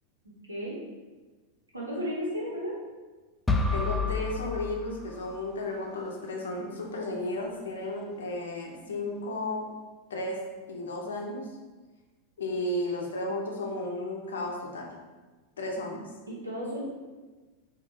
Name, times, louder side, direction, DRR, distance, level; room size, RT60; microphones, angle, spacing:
voice 1, 1.7-2.7 16.3-16.9, equal, 80° right, -6 dB, 1.2 m, -33 dB
sound 1, 3.5-5.5, left 3 dB, 10° left, 0.3 m, -30 dB
voice 2, 3.7-9.7 10.1-10.4 10.7-11.5 12.4-14.9 15.6-16.0, left 1 dB, 65° left, 0 dB, 0.6 m, -33 dB
3.8 x 2.6 x 3.5 m, 1.3 s
figure-of-eight pair, 90°, 0 cm